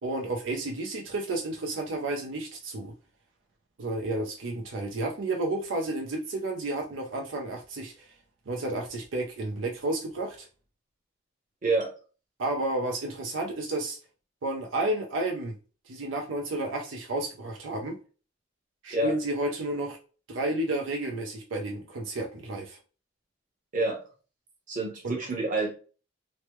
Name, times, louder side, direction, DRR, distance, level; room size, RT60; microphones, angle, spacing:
voice 1, 0.0-2.9 3.8-8.1 8.5-10.5 12.4-14.0 14.4-15.5 15.9-18.0 18.8-20.0 20.3-22.8 25.0-25.1, right 2 dB, 85° right, 2 dB, 0.6 m, -31 dB
voice 2, 24.7-25.7, right 2 dB, 45° right, 0 dB, 1.0 m, -27 dB
3.1 x 2.1 x 3.0 m, 0.36 s
head